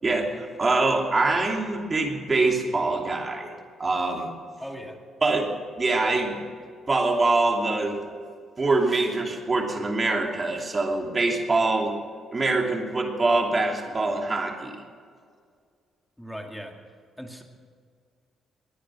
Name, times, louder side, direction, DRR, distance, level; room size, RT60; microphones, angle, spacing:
voice 1, 0.0-3.5 3.8-4.3 5.2-5.5 5.8-6.4 6.9-8.0 8.6-11.9 12.3-14.8, right 3 dB, 30° right, 1 dB, 2.9 m, -24 dB
voice 2, 4.6-5.0 16.2-16.7 17.2-17.4, equal, 5° left, 3 dB, 2.3 m, -38 dB
20.5 x 10.0 x 6.3 m, 2.1 s
cardioid pair, 90°, 0 cm